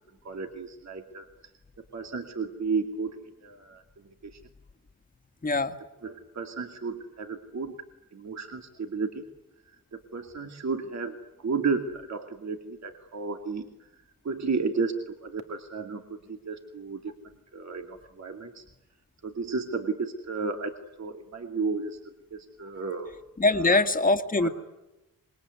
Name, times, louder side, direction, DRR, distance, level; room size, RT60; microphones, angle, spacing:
voice 1, 0.2-1.3 1.9-3.8 4.2-4.4 6.0-7.8 8.1-9.2 9.7-17.1 17.5-18.6 19.2-23.1 23.7-23.8 24.4-24.5, right 4 dB, 50° right, 4 dB, 2.6 m, -33 dB
voice 2, 5.4-5.8 23.4-24.5, left 2 dB, 25° left, 7 dB, 2.0 m, -23 dB
26.5 x 22.0 x 9.6 m, 0.96 s
wide cardioid pair, 115°, 36 cm